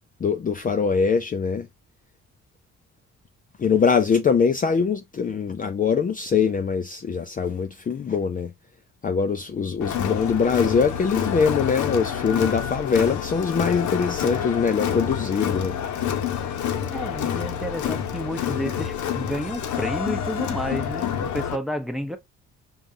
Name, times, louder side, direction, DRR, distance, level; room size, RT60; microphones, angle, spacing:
voice 1, 0.2-1.7 3.6-8.5 9.0-15.8, left 5 dB, 30° left, 0.4 m, -23 dB
Crowd, 9.8-21.6, left 9 dB, 75° left, 0.8 m, -28 dB
voice 2, 16.9-22.2, equal, ahead, 0.8 m, -31 dB
5.2 x 2.5 x 2.6 m
cardioid pair, 90°, 30 cm